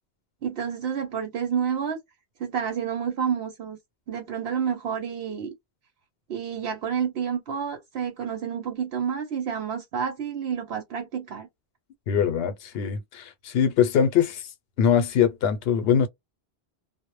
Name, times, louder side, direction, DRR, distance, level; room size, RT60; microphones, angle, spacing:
voice 1, 0.4-2.0 2.4-3.8 4.1-5.5 6.3-11.5, right 7 dB, 80° right, 0.9 m, -29 dB
voice 2, 12.1-14.5 14.8-16.1, left 8 dB, 75° left, 0.8 m, -22 dB
2.0 x 2.0 x 3.1 m
omnidirectional pair, 1.0 m